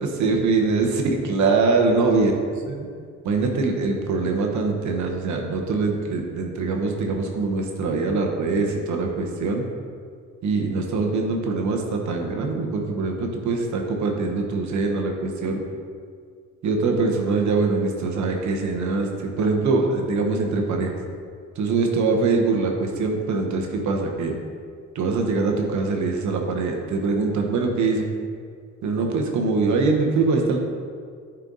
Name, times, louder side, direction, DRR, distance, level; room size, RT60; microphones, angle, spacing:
voice 1, 0.0-0.9 1.3-2.9 3.2-9.6 10.4-15.6 16.6-21.0 21.5-24.3 24.9-28.1 28.8-30.6, right 3 dB, 70° right, 2 dB, 1.1 m, -23 dB
9.1 x 4.5 x 3.9 m, 2.1 s
cardioid pair, 90°, 30 cm